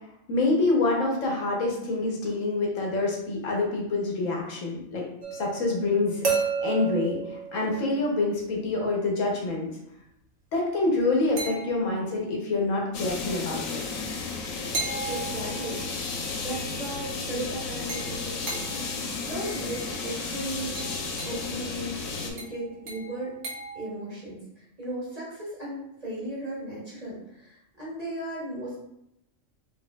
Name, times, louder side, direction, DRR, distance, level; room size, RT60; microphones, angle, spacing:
voice 1, 0.3-5.0 5.3-9.7 10.5-13.8, left 2 dB, 70° left, -1 dB, 1.2 m, -26 dB
sound 1, 5.2-8.3 11.4-12.2 14.7-15.9 17.9-18.9 19.8-20.0 20.8-21.5 22.4-23.9, right 5 dB, 75° right, 1.3 m, -34 dB
sound 2, 12.9-22.3, left 4 dB, 90° left, 1.0 m, -33 dB
voice 2, 14.7-15.8 16.4-20.8 21.2-23.3 23.7-28.8, right 1 dB, 30° right, -7 dB, 1.3 m, -36 dB
4.5 x 2.7 x 2.2 m, 0.82 s
omnidirectional pair, 1.4 m